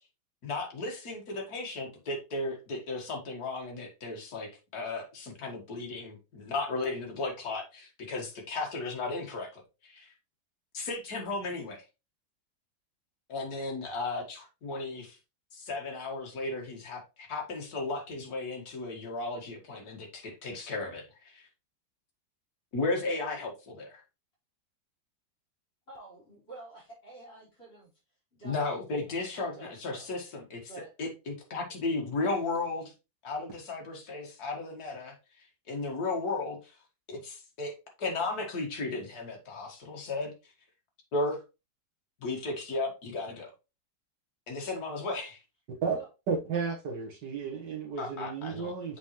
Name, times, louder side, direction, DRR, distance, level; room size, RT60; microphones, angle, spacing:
voice 1, 0.4-10.1 10.7-11.8 13.3-15.2 15.5-21.5 22.7-24.0 28.4-30.7 31.0-32.9 33.2-35.1 35.7-36.7 37.1-37.7 38.0-40.3 41.1-41.4 42.2-43.5 44.5-45.4 48.0-49.0, left 3 dB, 55° left, 2.2 m, -35 dB
voice 2, 25.9-27.9 28.4-29.0 29.3-30.3 30.7-30.9 45.9-46.1, right 3 dB, 30° left, 3.8 m, -48 dB
voice 3, 46.3-49.0, right 5 dB, 70° right, 1.8 m, -33 dB
7.2 x 5.0 x 3.0 m
omnidirectional pair, 2.0 m